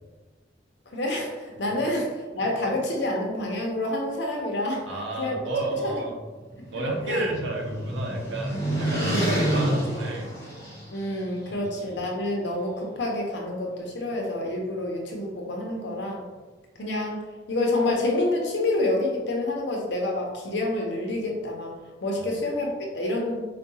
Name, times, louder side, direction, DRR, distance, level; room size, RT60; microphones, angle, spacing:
voice 1, 0.9-4.8 5.2-5.4 5.8-5.9 7.1-7.2 9.0-9.4 10.9-16.2 16.8-17.2 17.5-21.7 22.0-23.4, left 2 dB, 70° left, -1 dB, 0.7 m, -28 dB
voice 2, 4.9-6.1 6.7-10.3 11.4-12.0 22.2-22.3, right 2 dB, 80° right, -1 dB, 0.6 m, -32 dB
sound 1, 6.4-11.1, right 1 dB, 15° left, 1.3 m, -28 dB
4.5 x 2.2 x 2.7 m, 1.3 s
head